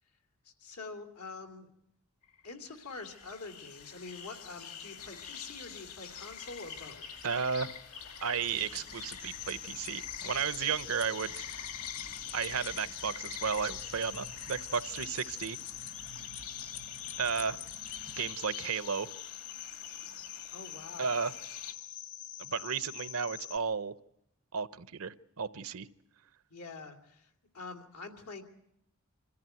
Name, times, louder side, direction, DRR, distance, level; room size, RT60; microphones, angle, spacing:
voice 1, 0.4-1.7 2.4-7.3 20.5-21.1 26.5-28.4, left 3 dB, 90° left, 6 dB, 2.6 m, -46 dB
sound 1, 2.2-21.7, left 7 dB, 75° left, 2.3 m, -46 dB
voice 2, 7.2-7.7 8.2-11.4 12.3-15.6 17.2-17.6 18.2-19.1 21.0-21.3 22.4-23.9 24.5-25.9, right 6 dB, 70° right, 15 dB, 0.7 m, -33 dB
sound 2, 8.4-18.3, left 6 dB, 55° left, 1.3 m, -51 dB
Cricket, 9.2-23.6, left 13 dB, 35° left, 0.7 m, -45 dB
25.0 x 14.0 x 9.1 m, 0.79 s
head